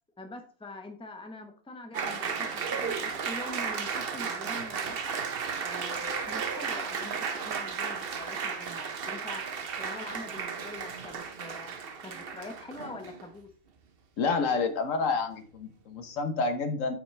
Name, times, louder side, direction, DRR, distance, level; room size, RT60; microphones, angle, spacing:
voice 1, 0.2-5.2 5.6-9.4 9.8-13.5, left 2 dB, 5° left, 4 dB, 0.8 m, -44 dB
Applause, 1.9-13.3, right 6 dB, 50° right, 0.9 m, -34 dB
voice 2, 14.2-17.0, left 4 dB, 75° left, 8 dB, 1.4 m, -29 dB
7.8 x 6.0 x 3.3 m, 0.41 s
omnidirectional pair, 1.4 m